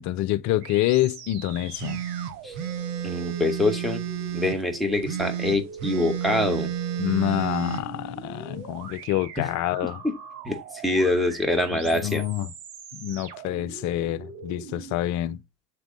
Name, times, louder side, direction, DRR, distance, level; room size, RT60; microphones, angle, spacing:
voice 1, 0.0-2.0 7.0-10.0 11.9-12.5 12.9-15.4, left 14 dB, 35° left, 0.6 m, -27 dB
sound 1, 0.6-15.0, right 7 dB, 70° right, 1.5 m, -42 dB
sound 2, 1.8-4.6 5.0-7.8, right 10 dB, 40° right, 1.1 m, -31 dB
voice 2, 3.0-4.0 4.3-6.7 9.4-9.5 9.8-10.1 10.4-10.6 10.8-12.2, left 2 dB, ahead, 1.4 m, -25 dB
8.2 x 3.5 x 3.8 m
hypercardioid pair, 90°, 49 cm